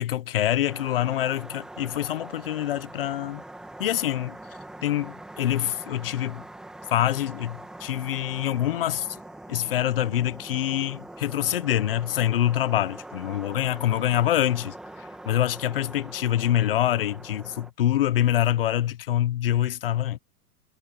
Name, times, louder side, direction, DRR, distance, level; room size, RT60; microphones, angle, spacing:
voice 1, 0.0-3.4 3.8-4.4 4.8-6.4 6.9-9.1 9.5-20.2, left 12 dB, 40° left, 0.5 m, -25 dB
sound 1, 0.7-17.7, right 1 dB, ahead, 1.1 m, -43 dB
supercardioid pair, 180°, 47 cm